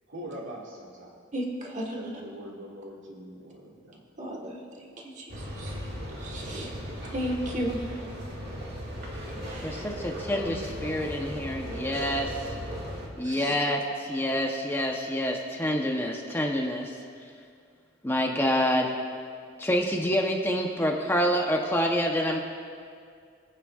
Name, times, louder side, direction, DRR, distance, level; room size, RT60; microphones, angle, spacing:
voice 1, 0.1-1.1 1.9-4.0, right 1 dB, 70° right, -3 dB, 2.2 m, -42 dB
voice 2, 1.3-2.1 4.2-5.7 6.2-6.7 7.1-8.1 9.4-9.9 11.6-11.7 13.2-13.5, equal, 35° right, -1 dB, 1.4 m, -35 dB
sound 1, 5.3-13.1, equal, 55° right, 2.0 m, -37 dB
voice 3, 9.6-12.5 13.2-17.0 18.0-18.9 19.6-22.4, equal, 10° left, 1 dB, 0.8 m, -27 dB
24.0 x 8.9 x 2.4 m, 2.2 s
head